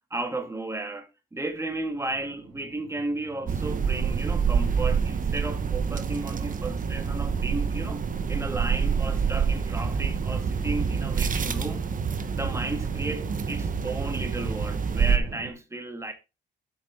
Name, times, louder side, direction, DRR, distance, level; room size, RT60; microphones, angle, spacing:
voice 1, 0.1-8.0 8.3-11.9 12.3-16.1, right 2 dB, 15° right, 2.1 m, -34 dB
sound 1, 1.5-15.5, right 5 dB, 85° right, 4.2 m, -42 dB
sound 2, 3.5-15.2, right 6 dB, 40° right, 1.2 m, -27 dB
8.3 x 6.2 x 5.2 m
cardioid pair, 90°, 20 cm